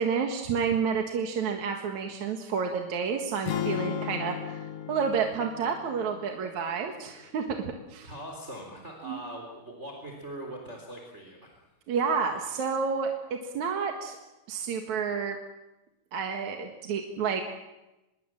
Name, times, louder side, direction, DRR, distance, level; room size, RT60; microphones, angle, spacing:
voice 1, 0.0-8.1 9.0-9.2 11.9-14.2 14.5-15.4 16.1-17.4, right 6 dB, 70° right, 3 dB, 3.0 m, -30 dB
sound 1, 3.5-7.6, left 10 dB, 60° left, 1.7 m, -36 dB
voice 2, 8.0-11.6, right 1 dB, 20° right, 1 dB, 3.9 m, -41 dB
25.0 x 22.5 x 7.7 m, 0.99 s
omnidirectional pair, 3.6 m